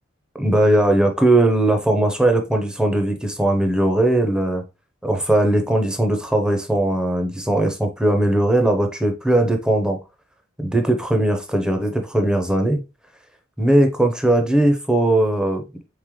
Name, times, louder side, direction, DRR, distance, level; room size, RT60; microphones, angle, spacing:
voice 1, 0.4-4.6 5.0-10.0 10.6-12.8 13.6-15.6, right 1 dB, 5° right, 0.7 m, -19 dB
3.9 x 3.8 x 3.1 m
head